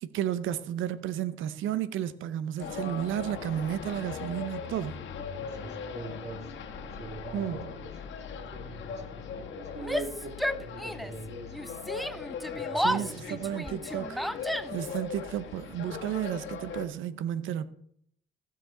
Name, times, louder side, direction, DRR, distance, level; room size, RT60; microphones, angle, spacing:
voice 1, 0.0-5.0 7.3-7.7 12.8-17.7, right 10 dB, 85° right, 0.8 m, -33 dB
sound 1, 2.6-16.9, left 6 dB, 70° left, 1.4 m, -39 dB
voice 2, 5.2-6.5 6.8-11.8 12.6-13.5, right 2 dB, 35° right, 2.2 m, -43 dB
Yell, 9.8-11.2 11.5-15.0, equal, ahead, 0.3 m, -33 dB
15.5 x 6.8 x 3.9 m
cardioid pair, 90°, 20 cm